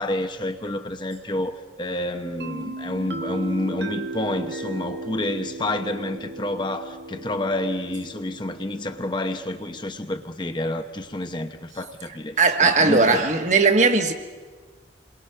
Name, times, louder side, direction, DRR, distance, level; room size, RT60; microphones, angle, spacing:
voice 1, 0.0-13.2, left 1 dB, 25° left, 0.9 m, -29 dB
sound 1, 2.4-10.0, right 2 dB, 60° right, 1.2 m, -36 dB
voice 2, 12.4-14.1, right 4 dB, 40° right, 1.5 m, -18 dB
28.0 x 22.5 x 5.7 m
head